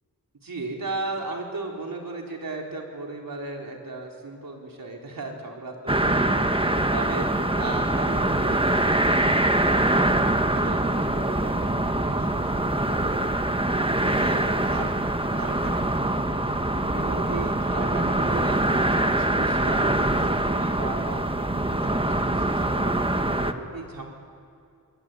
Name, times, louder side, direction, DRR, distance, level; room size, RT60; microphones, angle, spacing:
voice 1, 0.4-6.4 6.9-7.3 7.5-13.2 13.7-14.9 15.3-16.1 16.9-18.6 18.9-23.1 23.4-24.1, right 3 dB, 70° right, 0 dB, 4.3 m, -36 dB
sound 1, 5.9-23.5, right 1 dB, 15° right, 1.4 m, -24 dB
25.5 x 21.5 x 9.4 m, 2.5 s
wide cardioid pair, 70°, 36 cm